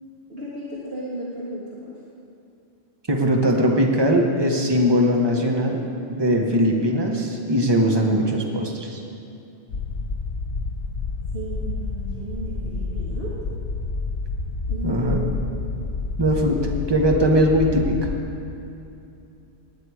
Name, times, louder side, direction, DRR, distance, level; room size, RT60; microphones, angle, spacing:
voice 1, 0.3-1.9 6.3-6.5 11.3-13.4 14.7-15.4, right 2 dB, 55° right, -7 dB, 2.1 m, -34 dB
voice 2, 3.1-5.8 6.1-9.0 14.8-15.2 16.2-16.6 16.9-18.0, equal, 20° right, 1 dB, 1.3 m, -20 dB
sound 1, 9.7-18.2, left 3 dB, 70° left, 1.5 m, -29 dB
18.5 x 10.0 x 4.9 m, 2.7 s
omnidirectional pair, 1.2 m